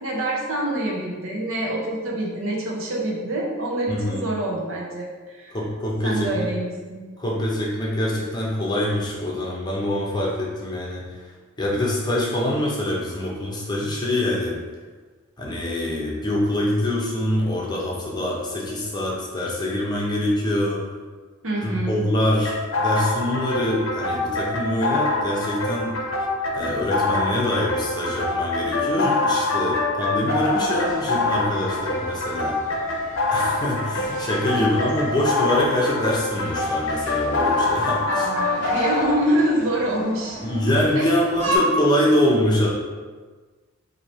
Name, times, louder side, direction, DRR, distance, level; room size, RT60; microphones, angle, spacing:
voice 1, 0.0-5.6 6.0-7.1 21.4-22.0 34.5-34.7 38.1-40.6 41.0-41.1, right 1 dB, 75° right, -2 dB, 0.8 m, -26 dB
voice 2, 3.9-4.2 5.5-6.5 7.2-11.0 11.6-14.6 15.4-20.8 21.6-25.9 26.5-32.6 33.3-38.3 40.4-42.7, left 1 dB, 20° left, -4 dB, 0.7 m, -24 dB
sound 1, 22.4-39.2, left 2 dB, 85° left, 0.6 m, -25 dB
sound 2, 30.2-41.6, right 1 dB, 40° right, 1.5 m, -37 dB
3.1 x 2.7 x 4.1 m, 1.4 s
head